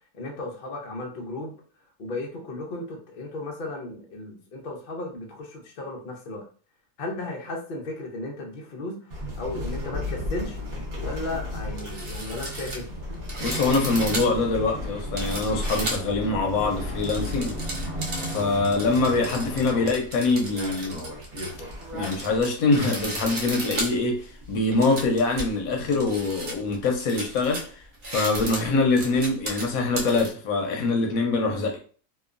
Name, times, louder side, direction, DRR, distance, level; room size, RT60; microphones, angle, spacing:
voice 1, 0.1-1.5 2.0-6.5 7.0-10.6 11.0-12.9, left 2 dB, 85° left, 0.4 m, -35 dB
sound 1, 9.1-22.4, left 1 dB, 45° right, 0.9 m, -34 dB
sound 2, 11.3-11.4 11.6-16.2 16.8-30.3, right 1 dB, 75° right, 0.4 m, -35 dB
sound 3, 12.8-19.9, right 1 dB, 30° left, 0.6 m, -40 dB
voice 2, 13.4-17.6 18.2-21.1 21.9-27.7 28.1-31.8, left 3 dB, 70° left, 0.9 m, -24 dB
2.9 x 2.2 x 2.4 m
omnidirectional pair, 1.8 m